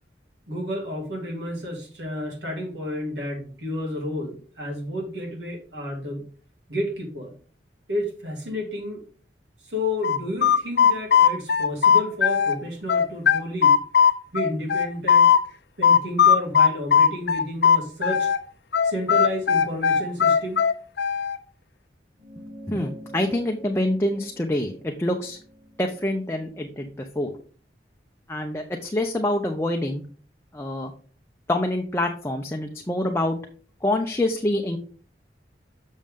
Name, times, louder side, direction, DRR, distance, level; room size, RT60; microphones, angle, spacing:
voice 1, 0.5-6.2 6.7-7.3 7.9-9.0 9.6-13.8 14.3-15.3 15.8-18.3 18.8-20.6, left 1 dB, 85° right, 0 dB, 2.5 m, -31 dB
sound 1, 10.0-12.6 12.9-15.4 15.8-18.4 18.7-21.4, left 7 dB, 70° left, 0.6 m, -18 dB
sound 2, 22.2-27.0, equal, 20° right, 4.1 m, -46 dB
voice 2, 22.7-25.4 25.8-26.9 27.2-27.3 28.3-30.0 30.5-30.9 31.5-33.4 33.8-34.8, left 1 dB, 15° left, 2 dB, 0.6 m, -26 dB
7.1 x 6.3 x 3.6 m, 0.41 s
head